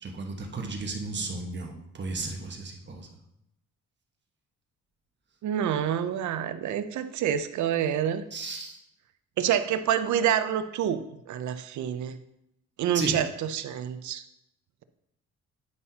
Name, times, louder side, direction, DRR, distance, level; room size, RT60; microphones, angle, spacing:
voice 1, 0.0-3.1 8.3-8.8 12.9-13.2, right 3 dB, 35° right, 2 dB, 1.3 m, -34 dB
voice 2, 5.4-8.2 9.4-12.2 12.8-14.2, right 9 dB, 70° right, 11 dB, 0.6 m, -27 dB
9.3 x 5.5 x 2.8 m, 0.81 s
cardioid pair, 90°, 30 cm